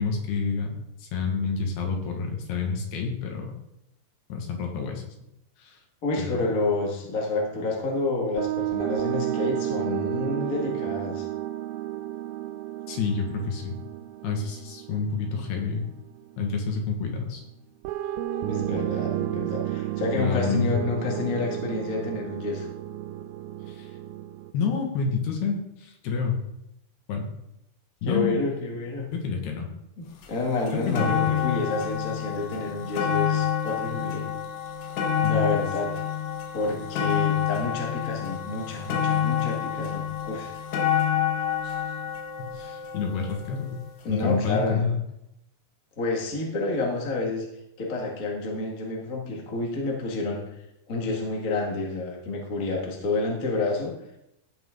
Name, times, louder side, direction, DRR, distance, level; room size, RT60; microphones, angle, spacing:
voice 1, 0.0-3.5 4.3-5.0 5.6-5.7 6.2-6.5 12.9-13.8 14.2-15.9 16.4-17.4 20.1-20.8 23.7-23.9 24.5-26.4 27.1-27.3 28.0-28.4 29.1-29.7 30.7-31.4 35.2-35.7 41.6-41.9 42.4-43.8 44.1-45.0, left 5 dB, 70° left, 1 dB, 3.4 m, -28 dB
voice 2, 6.0-11.3 18.4-22.7 28.0-29.1 30.0-34.3 35.2-36.0 36.5-40.5 44.0-44.8 46.0-47.4 47.8-50.4 50.9-53.9, left 3 dB, 45° left, -1 dB, 1.1 m, -29 dB
sound 1, 8.4-16.5 17.8-24.5, right 13 dB, 85° right, 2.1 m, -32 dB
sound 2, 30.2-30.3 30.7-43.8 44.6-44.7, left 9 dB, 85° left, 3.7 m, -28 dB
16.0 x 5.9 x 3.8 m, 0.83 s
omnidirectional pair, 5.0 m